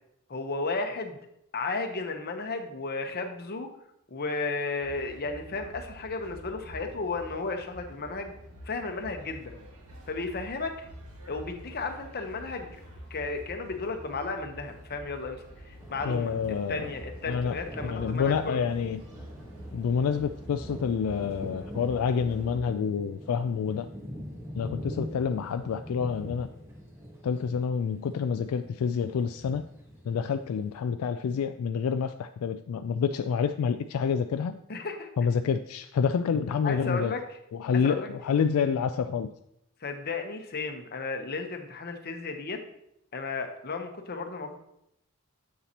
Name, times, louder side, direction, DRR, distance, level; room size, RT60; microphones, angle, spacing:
voice 1, 0.3-1.2 1.5-3.7 4.1-8.3 8.7-9.5 10.1-10.9 11.3-12.8 13.1-16.3 16.7-18.6 34.7-35.1 36.6-37.2 37.7-38.1 39.8-42.6 43.1-44.6, left 3 dB, 45° left, 5 dB, 0.9 m, -34 dB
sound 1, 4.8-22.6, equal, 80° right, 1.8 m, -47 dB
sound 2, 15.8-30.8, equal, 15° right, 1.3 m, -43 dB
voice 2, 16.1-16.9 17.3-19.0 19.7-23.9 24.6-26.5 27.2-29.6 30.0-34.6 35.2-37.1 37.5-39.3, left 6 dB, 75° left, 9 dB, 0.3 m, -28 dB
7.4 x 7.0 x 2.9 m, 0.78 s
head